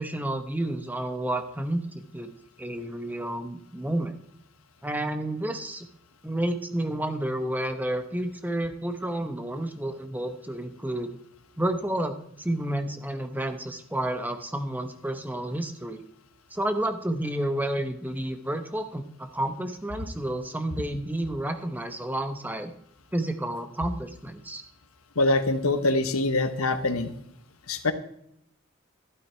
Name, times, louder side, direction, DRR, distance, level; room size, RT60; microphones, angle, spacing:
voice 1, 0.0-4.1 4.8-5.9 6.2-11.2 11.6-16.0 16.5-22.7 23.1-24.6, right 1 dB, 10° right, 7 dB, 0.9 m, -30 dB
voice 2, 25.2-27.1 27.7-27.9, left 2 dB, 90° left, 10 dB, 1.2 m, -24 dB
12.0 x 12.0 x 4.5 m, 0.72 s
head